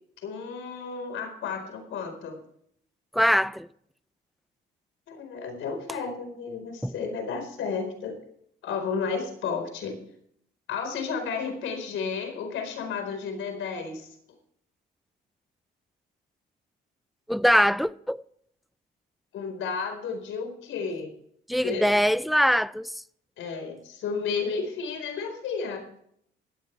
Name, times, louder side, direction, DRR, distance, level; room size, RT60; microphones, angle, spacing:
voice 1, 0.2-2.4 5.1-8.2 8.6-10.0 10.7-14.2 19.3-21.1 21.6-21.9 23.4-25.9, left 5 dB, 85° left, 4.4 m, -32 dB
voice 2, 3.1-3.7 6.8-6.9 17.3-18.2 21.5-22.9, equal, ahead, 0.5 m, -22 dB
17.5 x 13.5 x 3.3 m
cardioid pair, 90°, 20 cm